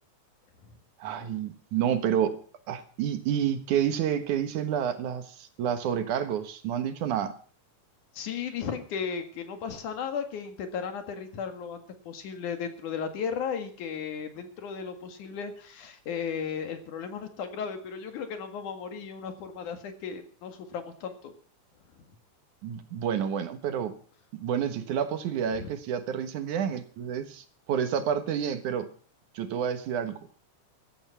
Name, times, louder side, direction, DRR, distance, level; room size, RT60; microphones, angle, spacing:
voice 1, 1.0-2.3 2.7-7.3 22.6-23.9 24.3-28.9 29.3-30.2, right 9 dB, 80° right, 9 dB, 2.9 m, -29 dB
voice 2, 8.1-21.3 22.0-22.1 25.6-25.7, left 6 dB, 85° left, 7 dB, 3.4 m, -35 dB
15.0 x 13.5 x 5.8 m, 0.42 s
omnidirectional pair, 3.5 m